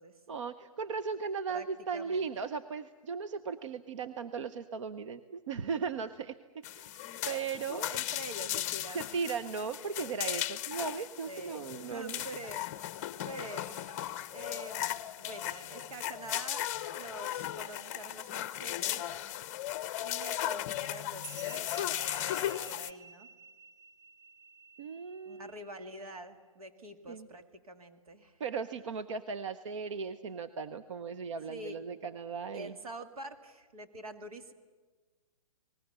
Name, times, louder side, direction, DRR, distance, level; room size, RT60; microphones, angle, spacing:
voice 1, 0.3-7.9 8.9-12.2 24.8-25.5 27.1-27.3 28.4-32.8, right 5 dB, 55° right, 11 dB, 0.9 m, -37 dB
voice 2, 1.9-2.5 7.9-9.0 11.3-12.7 13.2-13.8 14.3-19.2 20.0-23.3 25.3-28.4 31.5-31.8 32.5-34.5, right 1 dB, 80° right, 7 dB, 2.4 m, -46 dB
sound 1, 6.6-22.9, left 13 dB, 25° left, 0.6 m, -37 dB
sound 2, 21.2-26.1, right 4 dB, 40° right, 1.5 m, -52 dB
30.0 x 19.5 x 6.8 m, 1.4 s
hypercardioid pair, 160°, 18 cm